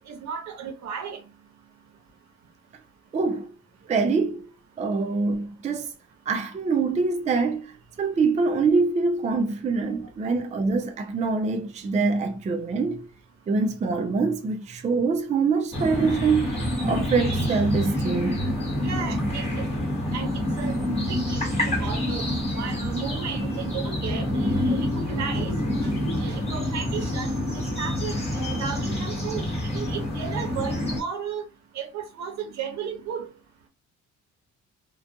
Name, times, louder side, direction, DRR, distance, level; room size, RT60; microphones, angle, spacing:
voice 1, 0.1-1.2 9.8-9.9 18.8-19.7 20.1-20.8 21.1-22.3 22.5-25.5 25.8-25.9 26.2-29.4 29.7-31.4 31.7-33.3, right 7 dB, 65° right, 0.8 m, -34 dB
voice 2, 3.1-3.5 3.9-4.5 4.8-5.9 6.3-7.7 8.0-13.1 13.5-16.6 16.8-18.4 20.8-20.9, right 4 dB, 25° right, 0.4 m, -24 dB
sound 1, 15.7-31.0, left 1 dB, 20° left, 1.1 m, -27 dB
2.4 x 2.2 x 2.6 m
cardioid pair, 90°, 30 cm